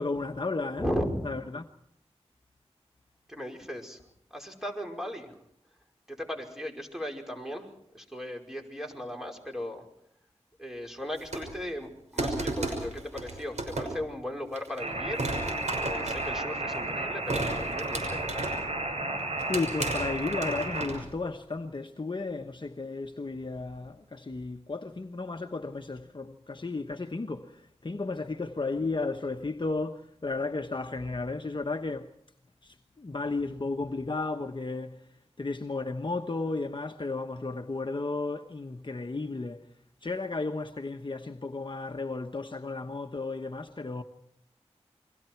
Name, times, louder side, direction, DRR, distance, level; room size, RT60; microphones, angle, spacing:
voice 1, 0.0-0.8 1.2-1.7 19.5-32.1 32.6-35.1 35.4-39.7 40.0-44.0, left 3 dB, 45° left, 1.2 m, -34 dB
voice 2, 0.8-1.3 3.3-4.0 4.3-5.4 6.1-9.9 10.6-15.3 15.6-18.5, equal, 5° right, 5.3 m, -37 dB
sound 1, 11.1-11.7 12.2-14.1 14.6-14.8 15.2-16.8 17.3-18.7 19.2-21.2, right 2 dB, 90° right, 5.9 m, -34 dB
sound 2, 14.8-20.9, right 2 dB, 70° right, 6.0 m, -33 dB
29.0 x 23.5 x 4.6 m
wide cardioid pair, 55°, 11 cm